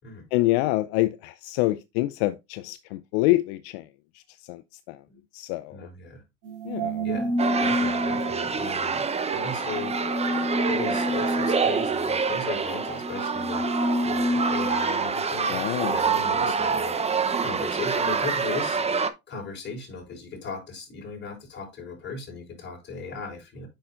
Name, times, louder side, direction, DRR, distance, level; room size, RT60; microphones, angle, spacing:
voice 1, 0.3-3.8 4.5-4.6 4.9-5.0 5.3-5.9 6.7-7.0 15.5-15.9 16.4-16.5, left 18 dB, 75° left, 0.5 m, -26 dB
voice 2, 5.7-6.2 7.0-7.3 7.6-9.9 10.3-17.0 17.4-18.8 19.3-23.7, left 4 dB, 35° left, 4.0 m, -37 dB
sound 1, 6.4-15.0, equal, 70° right, 3.1 m, -29 dB
sound 2, 7.4-19.1, right 5 dB, 20° right, 0.8 m, -26 dB
8.6 x 5.7 x 2.5 m
supercardioid pair, 100°, 33 cm